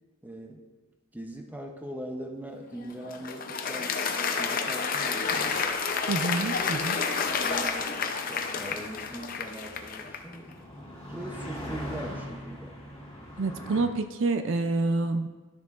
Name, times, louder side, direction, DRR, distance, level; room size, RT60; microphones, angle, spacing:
voice 1, 0.2-0.6 1.1-3.9 4.4-5.6 7.4-10.5 11.1-12.8, right 1 dB, 10° right, 2 dB, 0.6 m, -41 dB
Applause, 2.7-10.4, left 5 dB, 40° left, 0.5 m, -30 dB
Three Cars Passby, 5.6-13.8, equal, 20° left, 2.7 m, -43 dB
voice 2, 6.1-7.1 13.4-15.3, right 3 dB, 60° right, 8 dB, 0.4 m, -27 dB
12.0 x 6.6 x 2.4 m, 1.3 s
head